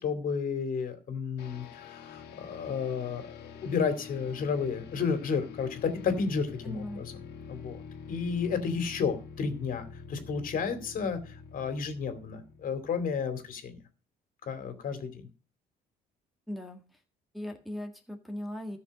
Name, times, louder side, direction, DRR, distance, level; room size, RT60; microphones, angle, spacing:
voice 1, 0.0-7.0 7.5-7.8 8.1-13.8 14.5-15.3, left 5 dB, 55° left, 8 dB, 2.5 m, -32 dB
sound 1, 1.4-13.6, left 6 dB, 75° left, 2.0 m, -46 dB
voice 2, 6.6-7.0 16.5-17.0 17.3-18.8, left 1 dB, ahead, 2 dB, 1.7 m, -38 dB
13.0 x 6.3 x 5.2 m, 0.36 s
cardioid pair, 110°, 17 cm